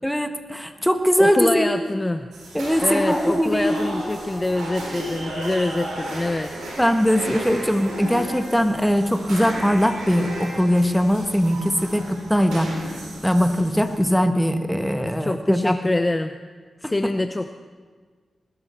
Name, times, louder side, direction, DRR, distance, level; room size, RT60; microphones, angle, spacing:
voice 1, 0.0-1.8 2.5-4.1 6.8-12.8 13.2-15.8 16.8-16.9, equal, ahead, 7 dB, 1.5 m, -21 dB
voice 2, 1.2-2.3 2.8-6.5 15.0-16.3 16.8-17.5, left 2 dB, 25° left, 8 dB, 0.6 m, -25 dB
sound 1, 2.3-14.0, right 1 dB, 90° right, 4.4 m, -34 dB
20.0 x 12.0 x 4.5 m, 1.5 s
cardioid pair, 50°, 0 cm